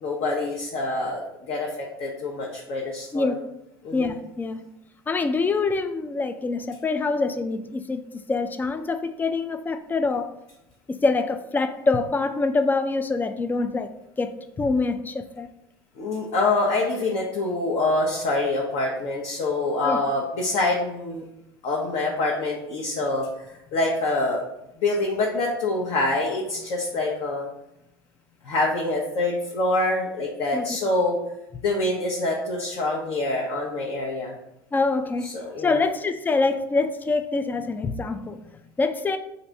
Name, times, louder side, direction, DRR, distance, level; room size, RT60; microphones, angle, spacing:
voice 1, 0.0-3.3 3.8-4.1 16.0-21.2 21.6-23.3 23.7-24.4 24.8-27.5 28.4-31.2 31.6-34.3 35.2-35.8, left 2 dB, 50° left, -2 dB, 0.8 m, -25 dB
voice 2, 3.9-4.7 5.1-10.3 10.9-13.9 14.2-15.5 19.8-20.0 30.5-30.7 34.7-35.3 35.6-39.2, left 3 dB, 15° left, 9 dB, 0.3 m, -25 dB
3.9 x 2.6 x 4.4 m, 0.87 s
hypercardioid pair, 75°, 13 cm